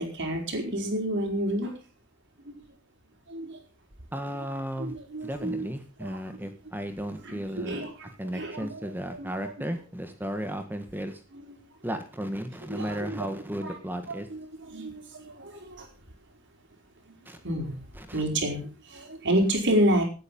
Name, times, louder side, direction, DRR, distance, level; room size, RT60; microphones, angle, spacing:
voice 1, 0.0-1.8 2.5-2.6 3.3-3.6 4.8-5.7 6.0-6.2 7.2-9.5 12.7-13.2 13.6-13.7 14.3-15.9 17.4-17.8 18.1-20.0, right 1 dB, 55° right, 3 dB, 4.8 m, -29 dB
voice 2, 4.1-4.9 5.2-7.8 8.2-11.2 11.8-14.3 17.2-17.4 17.9-18.2, equal, 10° right, 7 dB, 1.6 m, -34 dB
18.0 x 9.3 x 5.5 m, 0.35 s
head